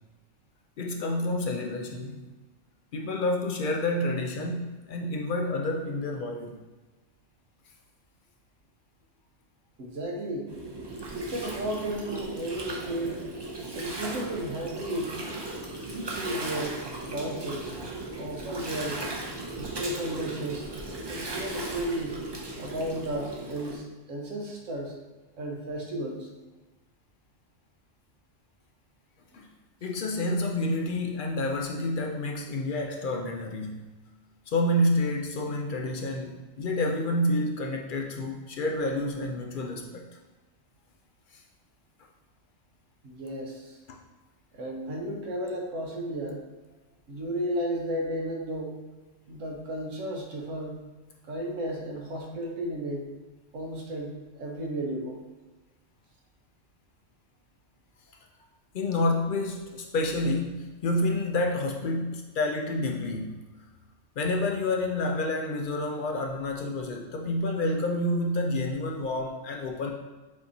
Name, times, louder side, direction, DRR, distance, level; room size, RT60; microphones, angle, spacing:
voice 1, 0.8-2.3 2.9-6.5 29.3-29.5 29.8-33.9 34.5-40.1 41.3-41.4 43.9-44.0 58.7-63.5 64.2-69.9, left 1 dB, 60° left, 2 dB, 0.5 m, -29 dB
voice 2, 9.8-10.5 11.1-13.2 13.7-15.2 15.8-17.7 18.2-19.0 19.5-20.6 21.1-22.2 22.6-25.0 25.4-26.3 43.0-43.8 44.5-46.4 47.1-48.8 49.3-50.8 51.2-53.1 53.5-55.2, right 1 dB, 85° right, 0 dB, 1.2 m, -33 dB
Gurgling, 10.5-23.7, right 2 dB, 30° right, 0.5 m, -37 dB
6.3 x 2.8 x 2.6 m, 1.2 s
omnidirectional pair, 1.3 m